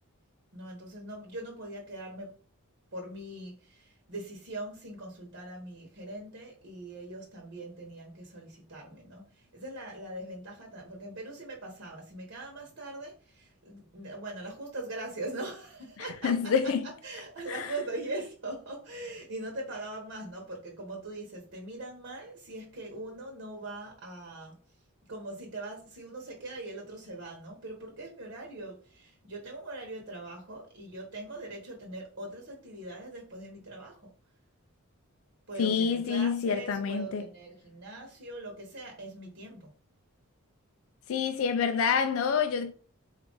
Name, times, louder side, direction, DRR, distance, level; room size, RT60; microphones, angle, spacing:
voice 1, 0.5-2.4 2.9-16.7 17.0-24.5 25.1-34.1 35.5-39.7, right 2 dB, 55° right, 1.1 m, -41 dB
voice 2, 16.0-16.8 17.5-17.7 35.6-37.2 41.1-42.7, left 6 dB, 65° left, 0.3 m, -27 dB
4.4 x 2.4 x 3.9 m
head